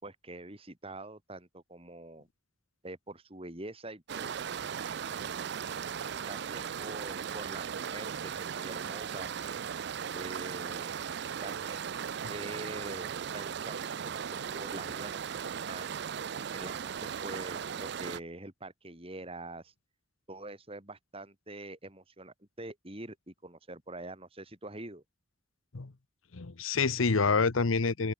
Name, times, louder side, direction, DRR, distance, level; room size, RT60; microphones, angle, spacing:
voice 1, 0.0-2.3 2.8-4.3 6.3-9.4 10.1-10.9 11.4-11.9 12.3-15.9 16.5-19.7 20.3-25.0, right 2 dB, 30° right, 3.1 m, -45 dB
sound 1, 4.1-18.2, right 7 dB, 55° right, 0.4 m, -37 dB
voice 2, 26.3-28.1, left 4 dB, 90° left, 1.0 m, -27 dB
head